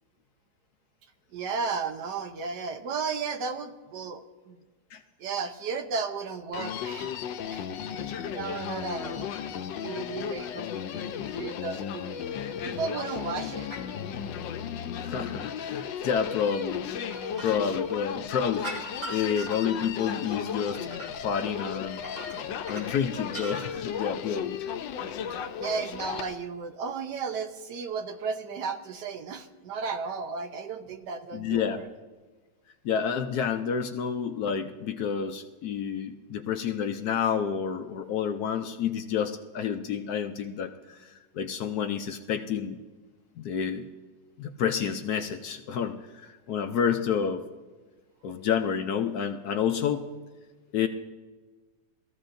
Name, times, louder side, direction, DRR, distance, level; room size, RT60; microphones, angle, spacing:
voice 1, 1.3-4.6 5.2-7.1 7.5-9.3 9.8-12.3 12.6-13.7 25.3-31.9, right 5 dB, 70° right, 7 dB, 1.4 m, -34 dB
Human voice, 6.5-26.3, left 8 dB, 85° left, 1.4 m, -35 dB
sound 1, 12.6-13.2 13.7-13.9 16.0-18.1 18.6-19.9 20.2-21.1 21.4-22.9 23.2-23.8 24.1-24.3, right 2 dB, 50° right, 3.8 m, -42 dB
voice 2, 15.0-16.8 17.4-18.7 19.1-22.0 22.7-24.6 31.3-31.8 32.8-42.8 43.4-43.9 44.4-47.4 48.2-50.1 50.7-50.9, left 7 dB, 65° left, 7 dB, 1.0 m, -29 dB
21.0 x 14.5 x 2.6 m, 1.3 s
omnidirectional pair, 2.0 m